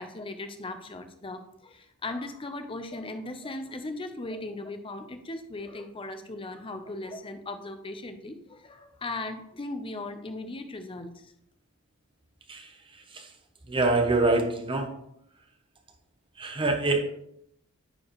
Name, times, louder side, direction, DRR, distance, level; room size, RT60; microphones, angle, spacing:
voice 1, 0.0-11.3, left 2 dB, 25° left, 7 dB, 0.6 m, -38 dB
voice 2, 13.7-14.9 16.4-17.1, right 2 dB, 25° right, 4 dB, 0.8 m, -25 dB
9.6 x 4.6 x 3.0 m, 0.75 s
head